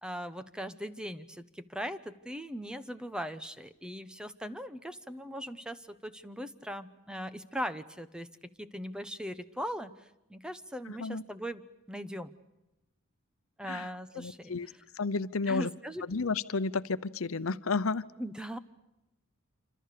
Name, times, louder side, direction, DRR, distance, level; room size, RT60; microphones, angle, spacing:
voice 1, 0.0-8.3 8.6-11.6 11.9-12.3 13.6-14.6 15.5-16.0 18.2-18.6, equal, 5° right, 11 dB, 0.9 m, -39 dB
voice 2, 10.8-11.2 13.7-13.9 14.1-15.7 16.0-18.0, left 4 dB, 75° left, 14 dB, 0.8 m, -32 dB
27.0 x 26.0 x 6.7 m, 0.93 s
head